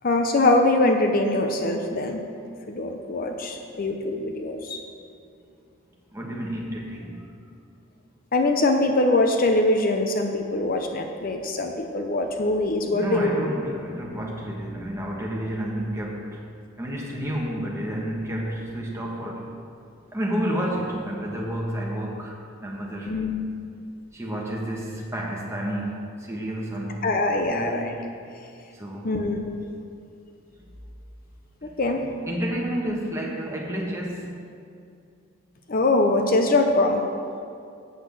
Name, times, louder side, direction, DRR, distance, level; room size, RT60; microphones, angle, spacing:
voice 1, 0.0-2.2 2.7-4.8 8.3-13.5 23.1-23.5 27.0-27.9 29.0-29.6 31.6-32.0 35.7-37.0, left 2 dB, 45° left, 4 dB, 0.6 m, -23 dB
voice 2, 6.1-7.3 12.9-16.4 16.8-19.5 20.1-22.3 22.6-23.1 24.1-27.1 27.5-28.0 28.7-29.1 31.6-31.7 32.3-34.3, equal, 15° right, -3 dB, 1.4 m, -30 dB
8.1 x 6.3 x 7.6 m, 2.5 s
head